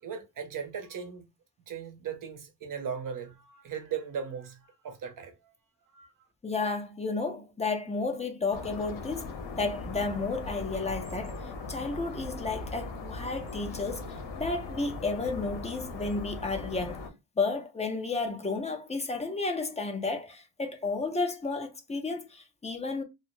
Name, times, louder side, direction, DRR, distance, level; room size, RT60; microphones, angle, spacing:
voice 1, 0.0-1.2 1.7-5.5 5.9-6.1, right 7 dB, 50° right, 0.7 m, -38 dB
voice 2, 6.4-9.3 9.6-17.0 17.4-23.0, left 3 dB, 20° left, 0.3 m, -32 dB
sound 1, 8.5-17.1, left 3 dB, 85° left, 0.7 m, -39 dB
2.7 x 2.0 x 3.0 m
wide cardioid pair, 160°, 42 cm